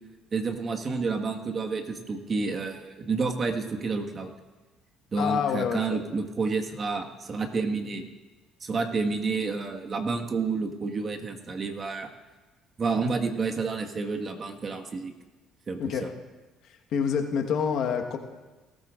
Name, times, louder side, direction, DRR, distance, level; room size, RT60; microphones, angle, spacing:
voice 1, 0.3-4.3 5.1-8.1 8.6-12.1 12.8-15.1 15.7-16.1, right 4 dB, 40° right, 3 dB, 1.5 m, -29 dB
voice 2, 5.2-6.0 15.8-16.0 16.9-18.2, left 7 dB, 65° left, 3 dB, 1.3 m, -27 dB
19.0 x 13.5 x 2.5 m, 1.2 s
supercardioid pair, 75°, 0 cm